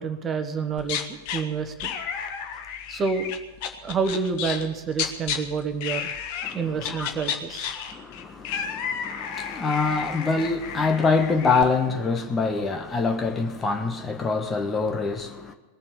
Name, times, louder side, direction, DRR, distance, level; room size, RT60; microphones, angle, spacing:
voice 1, 0.0-1.9 2.9-3.3 3.8-6.1 6.5-7.8, right 5 dB, 25° right, 1.4 m, -28 dB
sound 1, 0.8-1.4 1.8-4.7 4.9-5.4 5.8-6.5 6.8-11.6, left 8 dB, 45° left, 1.4 m, -32 dB
voice 2, 7.9-15.5, left 4 dB, 20° left, 1.3 m, -25 dB
19.5 x 7.3 x 10.0 m
figure-of-eight pair, 90°, 0 cm